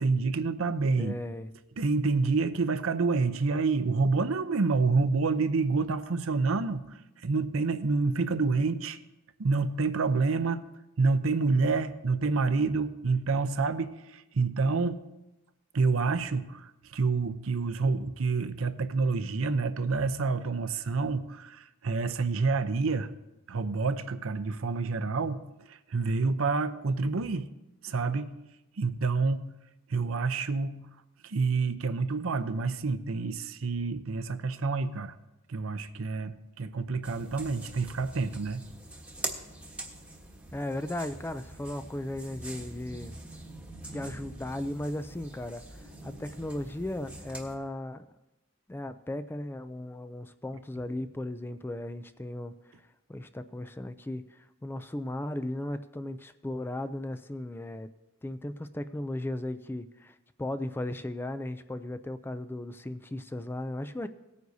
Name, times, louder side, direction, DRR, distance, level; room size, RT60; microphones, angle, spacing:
voice 1, 0.0-1.1 1.8-9.0 9.4-10.6 11.0-15.0 15.7-23.1 23.5-27.5 27.8-28.4 28.8-29.6 29.9-30.9 31.2-35.1 35.5-38.6, right 4 dB, 70° right, 12 dB, 0.6 m, -28 dB
voice 2, 1.0-1.5 40.5-43.2 43.9-48.1 48.7-52.5 53.1-57.9 58.2-64.1, left 1 dB, 10° left, 10 dB, 0.3 m, -36 dB
sound 1, 37.0-47.6, right 2 dB, 5° right, 1.2 m, -44 dB
18.0 x 9.4 x 2.7 m, 0.97 s
head